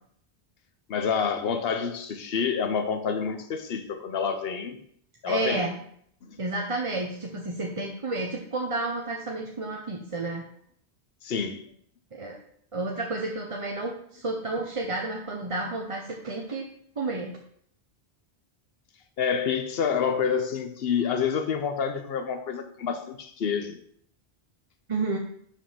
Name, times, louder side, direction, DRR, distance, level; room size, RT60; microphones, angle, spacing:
voice 1, 0.9-4.8 5.2-5.7 6.2-6.4 11.2-11.6 19.2-23.8, left 6 dB, 70° left, 1.0 m, -28 dB
voice 2, 5.3-5.7 6.4-10.4 12.1-12.4 12.7-16.7 17.0-17.3 24.9-25.2, right 2 dB, 35° right, 0.8 m, -31 dB
5.2 x 5.2 x 5.7 m
omnidirectional pair, 1.1 m